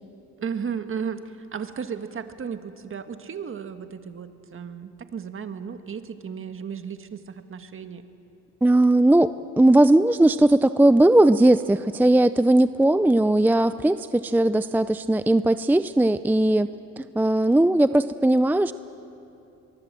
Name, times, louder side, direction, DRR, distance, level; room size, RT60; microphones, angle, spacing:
voice 1, 0.4-8.0, right 6 dB, 45° right, 8 dB, 1.6 m, -34 dB
voice 2, 8.6-16.7 17.0-18.7, right 1 dB, 5° right, 13 dB, 0.5 m, -18 dB
23.5 x 23.0 x 7.7 m, 2.7 s
cardioid pair, 90°, 30 cm